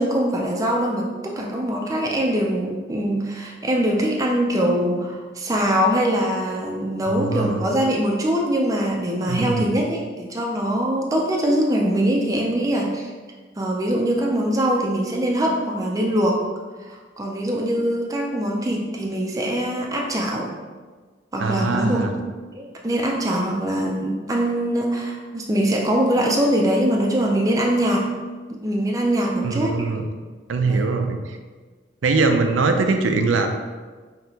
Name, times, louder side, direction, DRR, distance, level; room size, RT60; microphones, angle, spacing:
voice 1, 0.0-13.1 13.6-16.4 16.8-20.5 21.3-22.1 22.5-28.1 28.5-29.8 30.7-30.9, right 1 dB, 15° right, 0 dB, 0.4 m, -22 dB
voice 2, 7.1-7.6 9.3-9.7 21.4-22.1 29.4-30.0 30.5-31.4 32.0-33.7, right 3 dB, 90° right, 6 dB, 0.5 m, -22 dB
5.6 x 2.9 x 2.8 m, 1.4 s
head